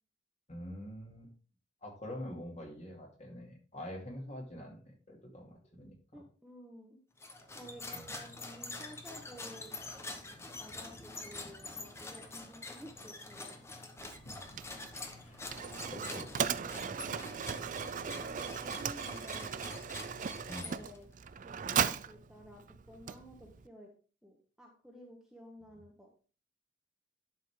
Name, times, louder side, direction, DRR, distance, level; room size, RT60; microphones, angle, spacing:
voice 1, 0.5-1.3 1.8-5.9 7.9-8.2 14.2-14.4 15.2-16.4 20.5-20.9, left 1 dB, 35° left, 0 dB, 2.5 m, -46 dB
voice 2, 6.1-7.0 7.5-9.7 10.6-13.6 15.3-15.5 17.0-19.7 20.3-21.1 21.4-23.9 24.2-26.1, equal, 5° right, -1 dB, 1.3 m, -53 dB
sound 1, 7.2-21.1, left 3 dB, 15° left, 1.0 m, -46 dB
Mechanisms, 14.0-23.7, right 7 dB, 45° right, 0.4 m, -38 dB
11.5 x 5.4 x 3.6 m, 0.38 s
head